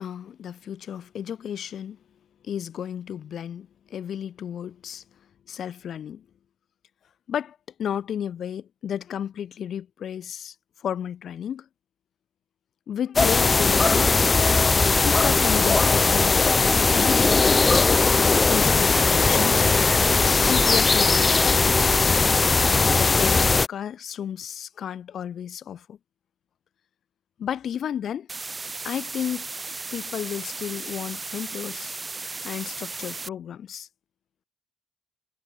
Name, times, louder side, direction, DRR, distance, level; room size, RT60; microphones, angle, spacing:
voice 1, 0.0-2.0 2.4-5.0 5.5-6.2 7.3-11.7 12.9-14.3 15.0-17.7 18.5-19.7 20.4-22.0 22.9-26.0 27.4-28.3 28.8-29.5 29.9-32.0 32.4-33.9, left 9 dB, 65° left, 0.9 m, -33 dB
sound 1, 13.2-23.7, left 4 dB, 30° left, 0.4 m, -19 dB
sound 2, 28.3-33.3, right 3 dB, 25° right, 3.2 m, -35 dB
cardioid pair, 90°, 0 cm